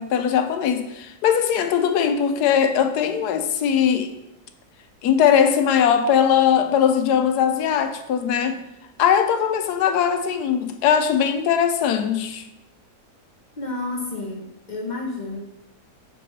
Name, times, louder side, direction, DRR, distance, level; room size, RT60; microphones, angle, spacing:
voice 1, 0.0-4.1 5.0-8.6 9.0-12.5, left 8 dB, 85° left, 1.2 m, -20 dB
voice 2, 13.6-15.4, left 2 dB, 45° left, 0.6 m, -30 dB
6.7 x 4.6 x 4.1 m
omnidirectional pair, 1.7 m